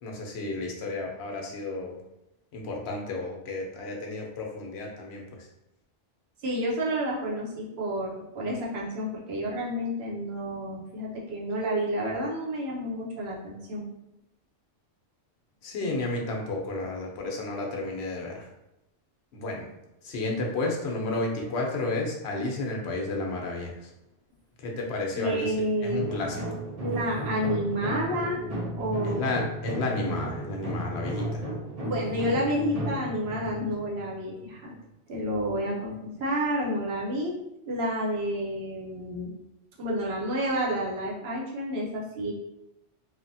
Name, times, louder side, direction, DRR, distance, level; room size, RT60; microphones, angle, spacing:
voice 1, 0.0-2.0 2.5-5.5 15.6-18.5 19.3-19.7 20.0-23.9 24.6-25.5 25.8-26.6 29.0-31.5, left 2 dB, 70° left, 0 dB, 0.9 m, -32 dB
voice 2, 6.4-13.9 25.1-26.0 26.8-28.5 28.8-29.2 31.8-34.7 35.1-37.4 37.7-39.3 39.8-42.3, equal, 65° right, -3 dB, 0.9 m, -30 dB
sound 1, 26.0-34.8, right 1 dB, 40° right, 0.6 m, -34 dB
3.3 x 2.1 x 2.6 m, 0.87 s
omnidirectional pair, 1.2 m